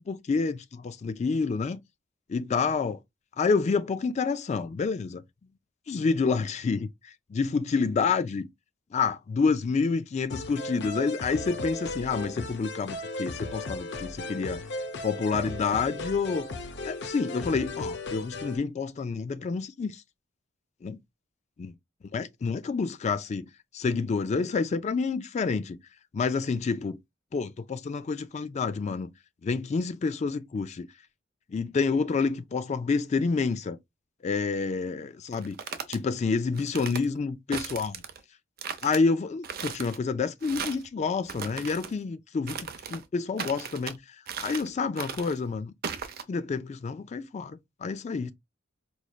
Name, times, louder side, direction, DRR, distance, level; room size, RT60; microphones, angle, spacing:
voice 1, 0.0-1.8 2.3-3.0 3.4-5.2 5.9-8.5 8.9-14.6 15.0-16.5 16.8-20.0 20.8-21.0 21.6-21.7 22.1-25.8 26.1-27.0 27.3-29.1 29.4-30.9 31.5-33.8 34.2-35.6 35.9-38.0 38.8-44.0 44.4-45.7 46.3-48.3, left 4 dB, 35° left, 0.3 m, -28 dB
sound 1, 10.3-18.6, left 2 dB, 60° left, 0.7 m, -36 dB
sound 2, 35.3-36.0 36.6-37.0 37.5-38.2 38.6-39.0 39.4-40.0 40.4-40.9 41.2-41.9 42.5-43.0 43.4-44.0 44.3-44.7 45.0-45.4 45.8-46.2, right 7 dB, 50° right, 0.6 m, -37 dB
5.0 x 3.1 x 2.3 m
head